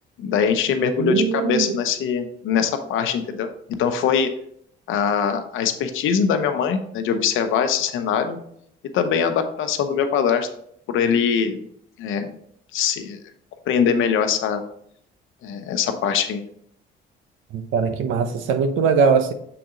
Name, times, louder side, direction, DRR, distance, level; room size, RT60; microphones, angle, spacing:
voice 1, 0.2-3.5 3.8-4.3 4.9-8.4 8.9-10.5 10.9-11.6 12.0-12.3 12.7-13.2 13.7-14.6 15.4-16.4, left 7 dB, 85° left, 7 dB, 0.8 m, -22 dB
voice 2, 1.0-1.8 17.5-19.3, right 6 dB, 90° right, 9 dB, 0.7 m, -21 dB
6.8 x 3.9 x 3.7 m, 0.68 s
cardioid pair, 90°, 20 cm